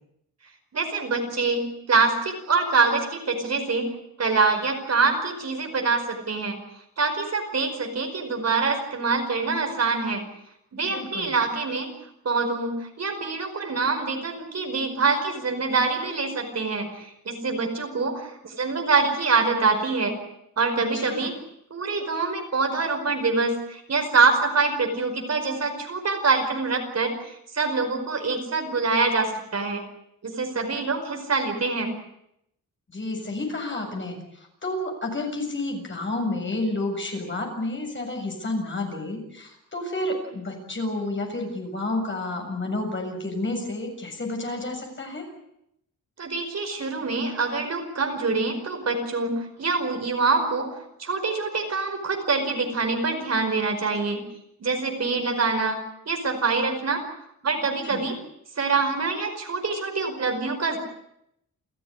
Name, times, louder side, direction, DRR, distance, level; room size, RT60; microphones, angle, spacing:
voice 1, 0.7-6.6 7.0-10.2 10.7-11.9 12.2-20.1 20.6-21.3 21.7-29.8 30.2-31.9 46.2-54.2 54.6-55.8 56.1-57.0 57.4-58.2 58.6-60.8, right 4 dB, 45° right, 4 dB, 5.1 m, -25 dB
voice 2, 10.9-11.3 20.9-21.3 32.9-45.2 57.8-58.0, left 2 dB, 35° left, 2 dB, 7.3 m, -30 dB
29.5 x 14.5 x 9.9 m, 0.78 s
wide cardioid pair, 130°, 35 cm